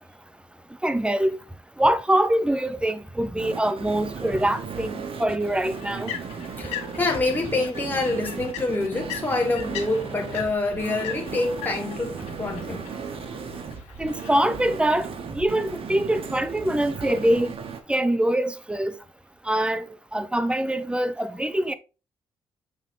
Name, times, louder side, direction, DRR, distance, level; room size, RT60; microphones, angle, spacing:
voice 1, 0.8-1.4 1.8-6.1 14.0-15.1 15.3-17.5 17.9-19.0 19.4-21.8, right 1 dB, 10° right, 0.9 m, -24 dB
sound 1, 3.4-17.8, right 5 dB, 55° right, 1.3 m, -36 dB
sound 2, 5.6-14.5, left 10 dB, 85° left, 1.9 m, -40 dB
voice 2, 6.6-12.8, left 2 dB, 15° left, 1.3 m, -26 dB
7.3 x 3.8 x 3.6 m
supercardioid pair, 60°, 11 cm